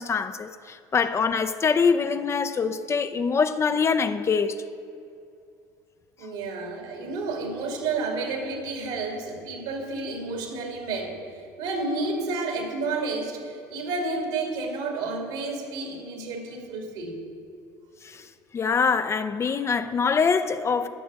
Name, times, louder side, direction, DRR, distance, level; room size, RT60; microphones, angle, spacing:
voice 1, 0.0-4.5 18.0-18.3 18.5-20.9, left 5 dB, 30° left, 0.5 m, -24 dB
voice 2, 6.2-11.2 11.6-17.2, right 3 dB, 75° right, 2.4 m, -30 dB
14.0 x 6.3 x 4.7 m
supercardioid pair, 80°, 9 cm